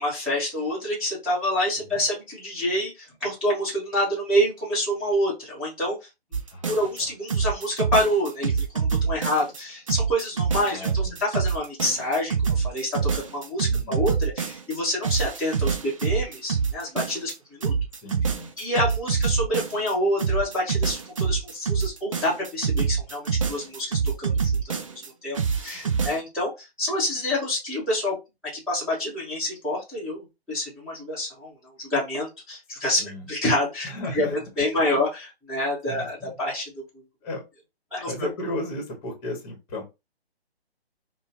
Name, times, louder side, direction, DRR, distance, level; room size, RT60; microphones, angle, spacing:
voice 1, 0.0-5.9 6.6-17.7 18.6-28.2 28.5-31.5 31.8-33.0 33.3-34.2 34.6-36.7 37.9-38.3, left 1 dB, 5° right, -11 dB, 1.2 m, -27 dB
sound 1, 6.3-7.0 7.3-9.6 9.9-14.8 15.0-17.3 17.6-19.9 20.2-25.1 25.4-26.2, right 6 dB, 30° right, 0.4 m, -25 dB
voice 2, 6.5-7.1 10.7-11.2 13.7-14.1 18.0-18.5 25.8-26.1 33.0-33.3 33.8-34.4 34.7-34.8 35.9-36.3 37.2-37.4 38.1-39.8, left 1 dB, 20° left, 2 dB, 1.2 m, -35 dB
5.4 x 2.2 x 2.6 m, 0.25 s
figure-of-eight pair, 140°, 32 cm